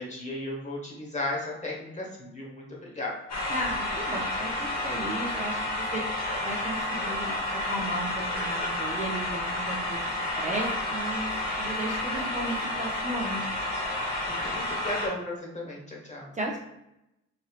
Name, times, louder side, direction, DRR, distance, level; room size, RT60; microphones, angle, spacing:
voice 1, 0.0-3.1 14.3-16.3, left 2 dB, 25° left, -3 dB, 1.1 m, -35 dB
sound 1, 3.3-15.1, left 1 dB, 60° left, 0.9 m, -30 dB
voice 2, 3.5-4.5 4.8-6.0 6.4-7.4 7.7-10.0 10.4-11.3 11.6-13.4 16.3-16.6, right 1 dB, 25° right, -1 dB, 0.5 m, -34 dB
3.1 x 2.7 x 2.3 m, 0.87 s
cardioid pair, 90°, 30 cm